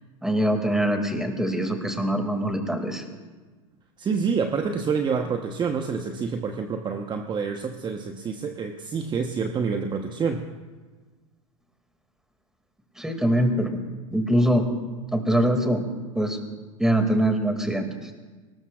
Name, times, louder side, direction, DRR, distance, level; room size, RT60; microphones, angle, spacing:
voice 1, 0.2-3.0 13.0-13.8 14.1-14.7 15.1-15.8 16.1-16.4 16.8-18.1, right 1 dB, 5° right, 4 dB, 2.3 m, -23 dB
voice 2, 4.0-10.5, right 5 dB, 25° right, 4 dB, 1.1 m, -27 dB
23.0 x 19.5 x 2.4 m, 1.3 s
hypercardioid pair, 95°, 17 cm